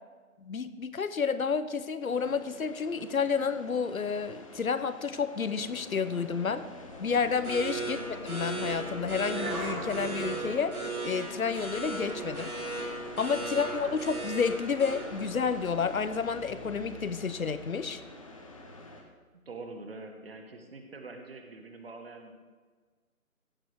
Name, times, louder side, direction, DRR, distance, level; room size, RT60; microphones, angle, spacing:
voice 1, 0.4-6.6 7.0-8.0 8.2-10.7 11.0-12.5 13.2-18.0, left 5 dB, 70° left, 12 dB, 0.9 m, -30 dB
sound 1, 2.0-19.0, left 2 dB, 25° left, 0.9 m, -46 dB
sound 2, 6.8-16.3, right 2 dB, 75° right, 3.0 m, -37 dB
voice 2, 7.7-8.1 13.4-13.7 19.4-22.3, right 3 dB, 40° right, 5 dB, 1.4 m, -45 dB
15.5 x 6.0 x 4.7 m, 1.4 s
figure-of-eight pair, 150°, 44 cm